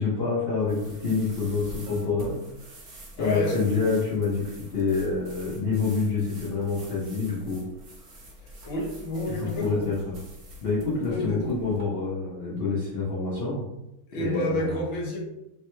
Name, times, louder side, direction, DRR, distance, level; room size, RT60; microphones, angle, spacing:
voice 1, 0.0-2.4 3.2-4.4 4.7-7.6 9.4-10.2 10.6-13.6 14.1-14.8, left 4 dB, 90° left, -8 dB, 0.5 m, -27 dB
sound 1, 0.6-11.8, equal, 80° right, 0.6 m, -46 dB
voice 2, 3.2-3.9 8.4-9.8 11.1-11.6 14.1-15.2, left 1 dB, 65° left, -3 dB, 1.6 m, -30 dB
3.4 x 2.1 x 3.0 m, 0.90 s
omnidirectional pair, 2.3 m